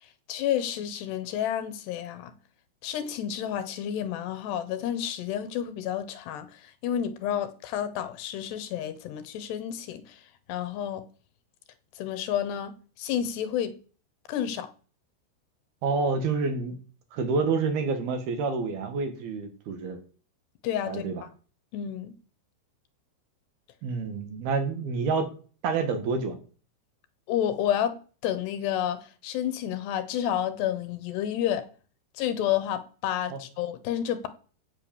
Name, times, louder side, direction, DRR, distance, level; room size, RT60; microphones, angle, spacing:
voice 1, 0.3-2.3 2.8-6.5 6.8-10.2 10.5-11.0 12.0-12.7 13.0-13.7 14.3-14.7 20.6-21.0 21.7-22.1 27.3-28.0 28.2-31.7 32.2-34.3, left 10 dB, 75° left, 3.2 m, -30 dB
voice 2, 15.8-16.8 17.1-20.0 20.9-21.2 23.8-25.3 25.6-26.4 33.3-33.4, right 4 dB, 60° right, 3.7 m, -28 dB
16.5 x 8.1 x 7.2 m
omnidirectional pair, 5.2 m